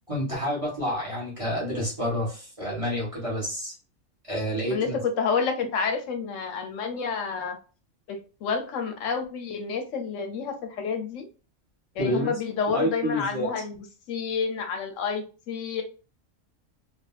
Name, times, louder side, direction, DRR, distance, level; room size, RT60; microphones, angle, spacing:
voice 1, 0.1-3.7 4.3-5.0 12.0-12.4 12.7-13.5, equal, 25° right, -5 dB, 1.2 m, -29 dB
voice 2, 4.7-7.6 8.1-11.3 11.9-15.8, left 5 dB, 80° left, 6 dB, 1.0 m, -29 dB
2.9 x 2.6 x 2.3 m, 0.34 s
omnidirectional pair, 1.3 m